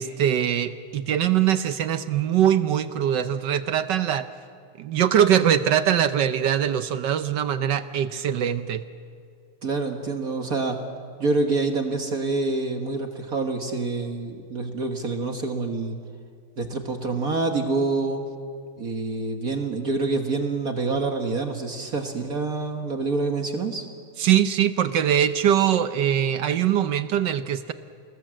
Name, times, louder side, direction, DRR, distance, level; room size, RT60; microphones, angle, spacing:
voice 1, 0.0-4.3 4.8-8.8 24.2-27.7, right 10 dB, 65° right, 11 dB, 1.2 m, -22 dB
voice 2, 9.6-10.8 11.2-16.0 16.6-18.2 18.8-23.9, right 3 dB, 45° right, 4 dB, 1.8 m, -26 dB
28.0 x 19.5 x 7.6 m, 2.2 s
omnidirectional pair, 2.4 m